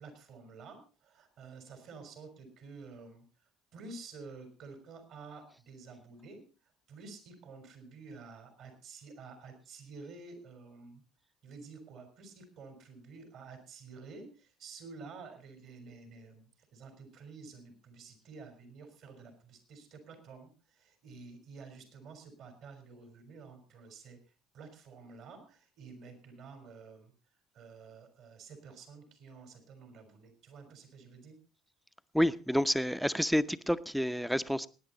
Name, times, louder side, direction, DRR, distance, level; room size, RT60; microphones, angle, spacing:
voice 1, 0.0-3.2 3.7-6.4 6.9-11.0 11.4-24.2 24.5-27.1 27.5-31.4, right 4 dB, 60° right, 7 dB, 3.8 m, -50 dB
voice 2, 32.1-34.7, equal, ahead, 14 dB, 0.7 m, -29 dB
19.5 x 9.5 x 3.9 m, 0.34 s
hypercardioid pair, 65°, 0 cm